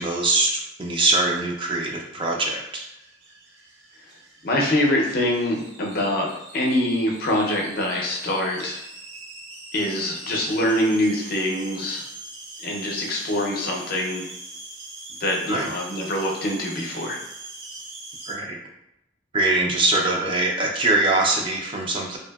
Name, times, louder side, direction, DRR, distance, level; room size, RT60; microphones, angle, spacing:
voice 1, 0.0-2.8 15.5-15.7 18.3-18.6 19.3-22.2, right 2 dB, 25° right, 0 dB, 0.3 m, -23 dB
sound 1, 1.2-18.3, right 2 dB, 75° right, 0.7 m, -42 dB
voice 2, 4.4-6.3 6.5-8.8 9.7-12.0 12.6-14.3 15.2-17.2, left 1 dB, 50° left, -1 dB, 0.5 m, -24 dB
2.7 x 2.6 x 2.2 m, 0.87 s
head